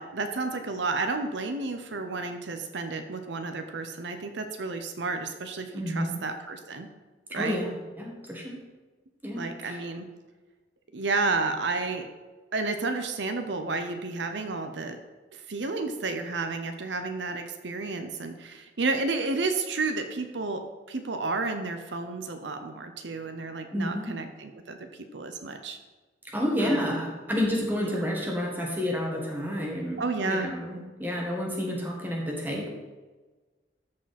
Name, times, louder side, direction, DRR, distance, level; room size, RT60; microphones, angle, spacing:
voice 1, 0.0-6.9 7.3-7.6 9.3-10.1 10.9-12.1 12.5-15.0 15.3-25.8 26.6-27.0 27.8-27.9 30.0-30.5, right 3 dB, 80° right, 7 dB, 0.8 m, -31 dB
voice 2, 5.7-6.2 7.3-8.6 9.2-9.8 23.7-24.1 26.2-32.7, equal, 10° right, -1 dB, 1.7 m, -30 dB
13.5 x 4.9 x 4.3 m, 1.3 s
head